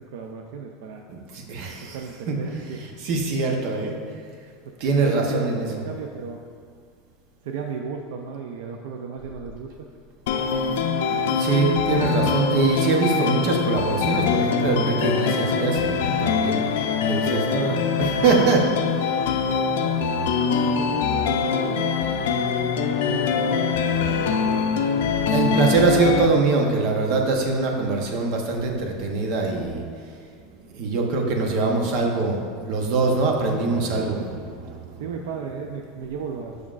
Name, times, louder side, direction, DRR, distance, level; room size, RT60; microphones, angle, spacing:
voice 1, 0.1-1.1 1.9-2.8 4.8-6.4 7.4-9.9 19.8-20.1 20.7-21.9 22.6-24.6 35.0-36.5, right 6 dB, 75° right, 3 dB, 0.4 m, -34 dB
voice 2, 1.1-2.0 2.3-2.4 3.0-4.0 4.8-5.7 11.1-16.6 17.1-18.7 25.3-29.9 30.7-34.9, right 3 dB, 45° right, 2 dB, 0.8 m, -23 dB
sound 1, 10.3-26.3, left 6 dB, 85° left, 0.4 m, -23 dB
7.2 x 6.2 x 2.4 m, 2.1 s
supercardioid pair, 165°, 0 cm